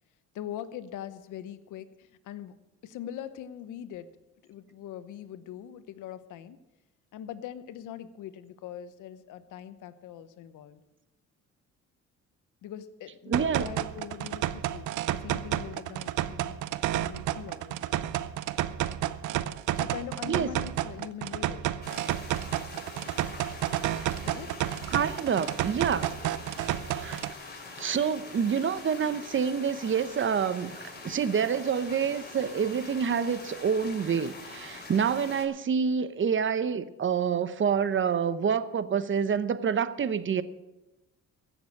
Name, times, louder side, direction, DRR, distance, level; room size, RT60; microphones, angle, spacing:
voice 1, 0.3-2.6 2.8-4.1 4.4-6.6 7.1-10.8 12.6-17.9 19.7-21.7 24.2-24.5, left 10 dB, 85° left, 1.0 m, -42 dB
voice 2, 13.3-13.7 20.3-20.5 24.9-26.1 26.9-27.2 27.8-30.8 31.0-40.4, right 7 dB, 40° right, 0.9 m, -27 dB
sound 1, 13.3-27.3, right 13 dB, 85° right, 0.6 m, -31 dB
sound 2, 21.8-35.5, left 3 dB, 35° left, 4.0 m, -44 dB
16.0 x 7.2 x 8.4 m
cardioid pair, 90°, 30 cm